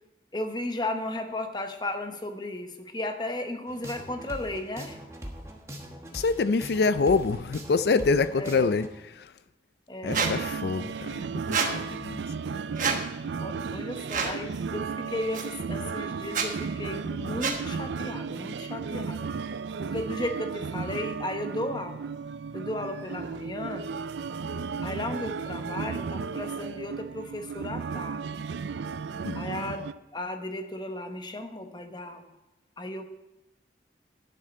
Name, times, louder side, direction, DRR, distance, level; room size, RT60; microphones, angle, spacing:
voice 1, 0.3-5.0 8.4-8.6 9.9-10.2 13.4-19.3 19.8-22.1 22.5-23.9 24.8-28.4 29.3-32.3 32.8-33.1, left 1 dB, 25° left, 7 dB, 0.9 m, -35 dB
sound 1, 3.7-8.9, equal, 15° right, 1.3 m, -41 dB
voice 2, 6.1-9.3 10.0-12.2 29.2-29.4, left 4 dB, 65° left, 13 dB, 0.4 m, -26 dB
Squeak, 10.1-10.3 11.5-11.7 12.8-13.0 14.1-14.4 15.3-15.4 16.3-16.5 17.4-17.6, right 5 dB, 45° right, 1.2 m, -26 dB
sound 2, 10.1-29.9, right 5 dB, 80° right, 0.4 m, -34 dB
11.0 x 9.8 x 4.3 m, 1.0 s
head